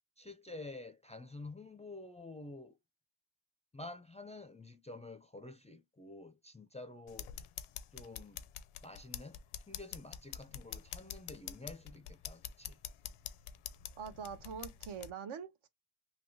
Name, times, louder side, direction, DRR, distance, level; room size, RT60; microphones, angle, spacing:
voice 1, 0.2-2.8 3.7-7.3 7.9-8.4 8.8-12.8, left 2 dB, 15° left, 0.3 m, -49 dB
sound 1, 7.1-15.1, left 10 dB, 85° left, 0.6 m, -47 dB
voice 2, 14.0-15.7, right 7 dB, 75° right, 0.8 m, -44 dB
3.4 x 2.7 x 2.7 m
cardioid pair, 90°, 49 cm